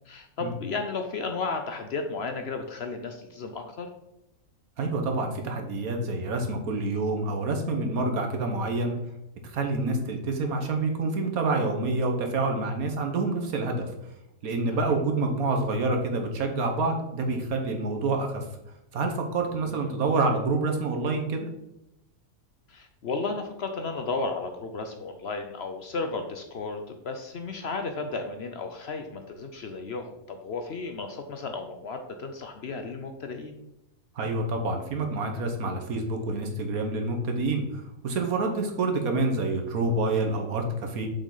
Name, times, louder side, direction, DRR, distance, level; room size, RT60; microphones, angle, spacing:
voice 1, 0.1-3.9 14.8-15.1 19.7-19.9 22.7-33.6, left 4 dB, 55° left, 6 dB, 0.8 m, -34 dB
voice 2, 4.8-8.9 9.5-13.9 14.4-18.5 18.9-21.5 34.1-41.1, right 3 dB, 75° right, 4 dB, 1.6 m, -27 dB
7.0 x 5.2 x 3.9 m, 0.86 s
omnidirectional pair, 1.5 m